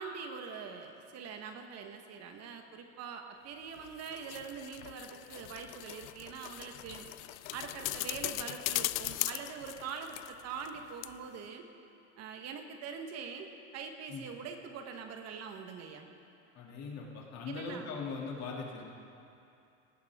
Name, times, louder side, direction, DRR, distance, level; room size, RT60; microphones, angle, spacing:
voice 1, 0.0-7.1 7.5-11.7 12.2-13.5 13.7-16.1 17.5-17.9, right 6 dB, 45° right, 5 dB, 1.3 m, -43 dB
sound 1, 3.8-10.8 11.0-11.1, left 19 dB, 70° left, 0.5 m, -39 dB
voice 2, 16.5-18.8, left 4 dB, 45° left, -2 dB, 2.7 m, -40 dB
18.0 x 14.5 x 3.6 m, 2.7 s
supercardioid pair, 120°, 36 cm